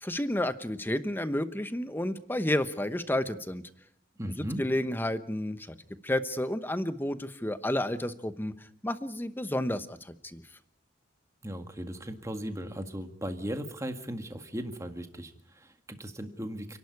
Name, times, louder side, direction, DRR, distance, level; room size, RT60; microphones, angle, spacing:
voice 1, 0.0-3.6 4.4-5.8 6.0-8.5 8.8-10.4, left 1 dB, 10° left, 11 dB, 1.0 m, -31 dB
voice 2, 4.2-4.7 11.4-16.8, equal, 15° right, 6 dB, 1.8 m, -37 dB
29.5 x 11.5 x 9.6 m, 0.72 s
head